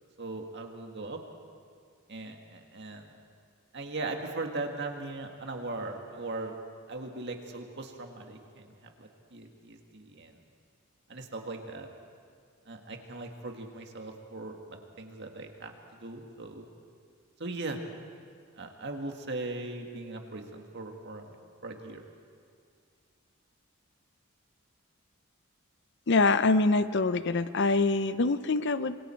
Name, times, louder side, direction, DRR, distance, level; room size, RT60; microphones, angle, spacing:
voice 1, 0.2-1.2 2.1-3.2 3.7-6.6 6.9-10.3 11.1-11.9 12.7-15.7 16.0-16.7 17.4-17.8 18.6-21.3 21.6-22.0, right 2 dB, 55° right, 3 dB, 1.9 m, -39 dB
voice 2, 26.1-29.0, left 3 dB, 55° left, 13 dB, 0.7 m, -25 dB
26.5 x 23.0 x 4.5 m, 2.2 s
head